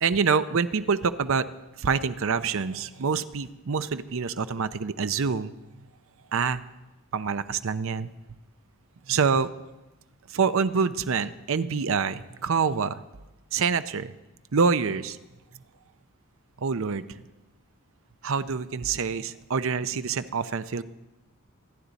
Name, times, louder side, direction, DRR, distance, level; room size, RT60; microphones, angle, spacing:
voice 1, 0.0-1.5 1.8-5.5 6.3-6.6 7.1-8.1 9.1-9.5 10.3-13.0 13.5-14.1 14.5-15.2 16.6-17.2 18.2-20.8, right 5 dB, 65° right, 12 dB, 0.6 m, -26 dB
26.0 x 10.5 x 4.1 m, 1.0 s
head